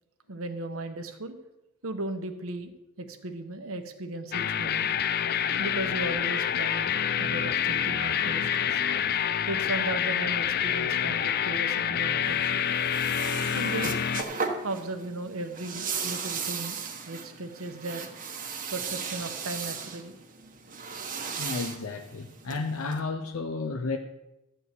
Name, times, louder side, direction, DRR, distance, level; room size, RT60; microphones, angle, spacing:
voice 1, 0.3-1.4 1.8-2.7 3.0-4.9 5.6-8.8 9.4-12.6 13.5-13.9 14.6-16.8 17.1-18.1 18.7-20.2, right 2 dB, 70° right, 1.1 m, -36 dB
sound 1, 4.3-14.2, left 9 dB, 45° left, 0.4 m, -27 dB
sound 2, 12.2-23.0, right 5 dB, 40° right, 1.1 m, -36 dB
voice 2, 21.4-24.0, left 3 dB, 80° left, 0.7 m, -32 dB
12.5 x 4.7 x 8.2 m
head